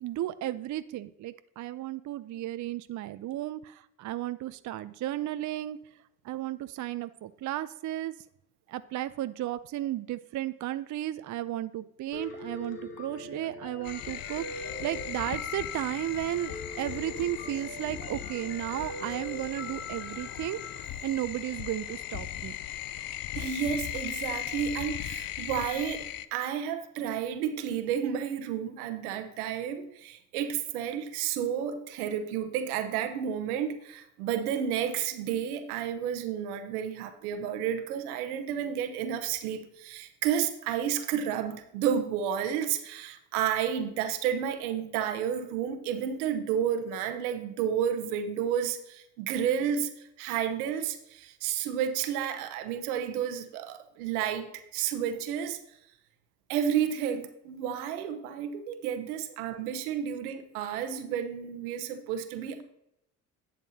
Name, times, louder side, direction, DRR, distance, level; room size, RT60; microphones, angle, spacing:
voice 1, 0.0-5.8 6.2-8.1 8.7-20.6 21.0-22.5, right 14 dB, 45° right, 13 dB, 0.5 m, -34 dB
Piano, 12.1-20.8, left 2 dB, 75° left, 1.5 m, -42 dB
sound 1, 13.8-26.3, left 12 dB, 55° left, 0.6 m, -38 dB
voice 2, 23.3-26.0 26.3-55.6 56.5-62.6, right 9 dB, 85° right, 7 dB, 1.1 m, -31 dB
11.0 x 7.5 x 2.8 m, 0.81 s
hypercardioid pair, 60°, 44 cm